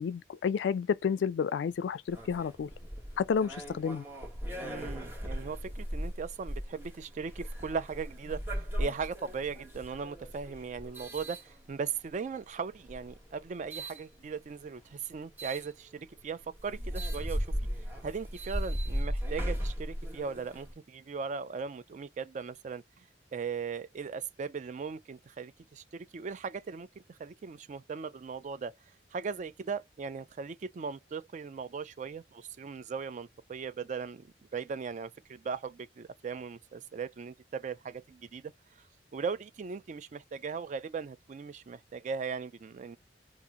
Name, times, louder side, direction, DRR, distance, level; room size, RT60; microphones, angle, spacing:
voice 1, 0.0-2.7 3.2-4.0, left 6 dB, 80° left, 0.3 m, -30 dB
sound 1, 2.1-12.1 12.8-14.0 15.4-15.7 16.2-16.3 16.6-20.7, equal, 10° right, 1.3 m, -37 dB
voice 2, 4.6-17.5 18.0-22.8 23.3-28.8 29.1-34.2 34.5-38.5 39.1-43.0, right 5 dB, 45° right, 0.3 m, -38 dB
2.8 x 2.5 x 3.6 m
head